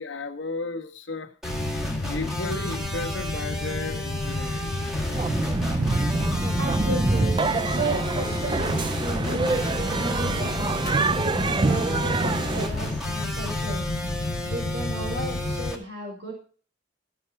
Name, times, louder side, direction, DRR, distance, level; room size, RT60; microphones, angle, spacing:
voice 1, 0.0-1.3 2.1-4.9, left 2 dB, 80° left, 1.5 m, -34 dB
sound 1, 1.4-15.7, left 2 dB, 60° left, 1.0 m, -31 dB
sound 2, 1.4-15.8, left 1 dB, ahead, 2.2 m, -34 dB
sound 3, 5.1-12.9, right 3 dB, 25° right, 0.4 m, -26 dB
voice 2, 6.6-10.6 11.5-14.1 14.4-16.3, right 2 dB, 85° right, 5.1 m, -34 dB
15.0 x 6.5 x 5.9 m
head